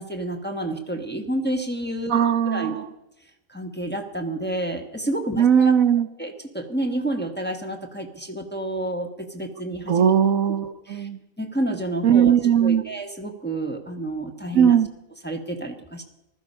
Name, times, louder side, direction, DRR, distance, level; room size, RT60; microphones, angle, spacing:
voice 1, 0.0-2.8 3.5-5.8 6.2-10.0 10.9-11.1 11.4-12.3 12.6-14.8 15.2-16.0, right 1 dB, 10° left, 3 dB, 1.1 m, -29 dB
voice 2, 2.1-2.8 5.4-6.1 9.9-11.2 12.0-12.8 14.5-14.9, right 8 dB, 85° right, 11 dB, 1.2 m, -19 dB
15.5 x 13.0 x 5.5 m, 0.93 s
omnidirectional pair, 1.4 m